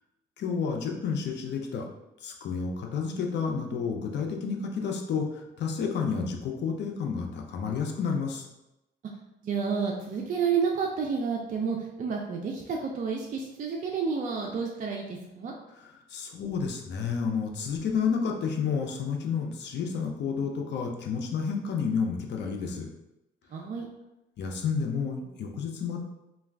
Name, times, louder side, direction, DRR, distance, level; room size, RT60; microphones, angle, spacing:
voice 1, 0.4-1.8 2.2-8.5 16.1-22.9 24.4-26.0, left 6 dB, 60° left, 2 dB, 0.6 m, -30 dB
voice 2, 9.4-15.5 23.5-23.9, right 5 dB, 40° right, -1 dB, 0.4 m, -30 dB
2.3 x 2.2 x 3.3 m, 0.93 s
cardioid pair, 90°, 20 cm